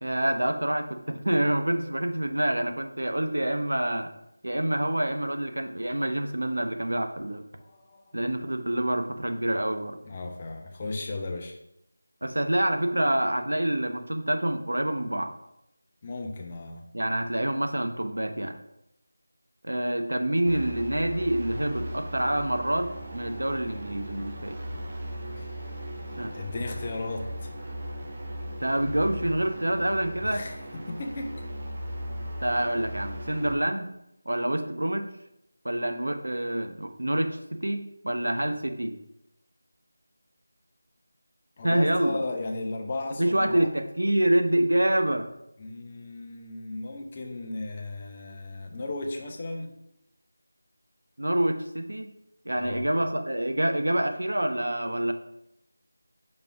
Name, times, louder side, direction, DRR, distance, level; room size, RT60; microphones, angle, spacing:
voice 1, 0.0-4.1 4.4-7.4 8.1-10.0 12.2-15.3 16.9-18.5 19.6-24.6 26.2-26.3 28.6-30.4 32.4-33.9 34.2-35.1 35.6-38.9 41.6-42.2 43.2-45.3 51.2-52.1 52.4-55.1, right 1 dB, 85° right, 6 dB, 1.0 m, -27 dB
voice 2, 7.6-8.2 10.0-11.6 16.0-16.8 25.4-25.6 25.9-27.5 30.2-31.4 41.6-43.7 45.6-49.7 52.6-52.9, left 2 dB, 25° left, 3 dB, 0.9 m, -35 dB
sound 1, 20.4-33.5, equal, 30° right, 1.2 m, -38 dB
5.4 x 5.3 x 5.9 m, 0.82 s
figure-of-eight pair, 170°, 0 cm